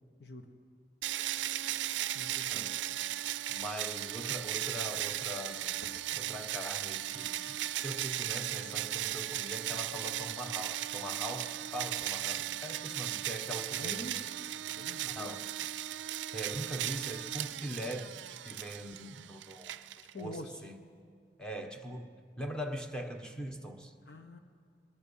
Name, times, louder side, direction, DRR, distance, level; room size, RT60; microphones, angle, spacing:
sound 1, 1.0-20.4, right 13 dB, 90° right, 0.4 m, -37 dB
voice 1, 2.1-2.7 13.8-14.3 14.8-15.3 20.1-20.6 24.1-24.4, left 1 dB, 65° left, 1.3 m, -45 dB
voice 2, 3.5-5.8 6.1-14.2 15.0-15.5 16.3-19.7 20.2-20.8 21.4-22.1 22.4-23.9, equal, 5° left, 1.3 m, -41 dB
22.5 x 21.5 x 5.7 m
head